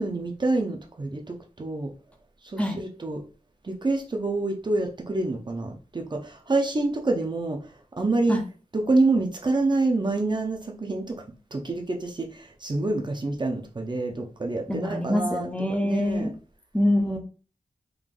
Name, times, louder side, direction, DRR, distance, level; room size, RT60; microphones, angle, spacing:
voice 1, 0.0-1.9 2.4-3.2 3.6-8.4 8.7-11.2 11.5-15.5 15.8-16.3, right 2 dB, 35° right, 2 dB, 0.6 m, -27 dB
voice 2, 14.7-16.3 16.7-17.2, left 1 dB, 10° left, 3 dB, 0.6 m, -24 dB
3.7 x 3.3 x 2.5 m, 0.36 s
wide cardioid pair, 105°, 13 cm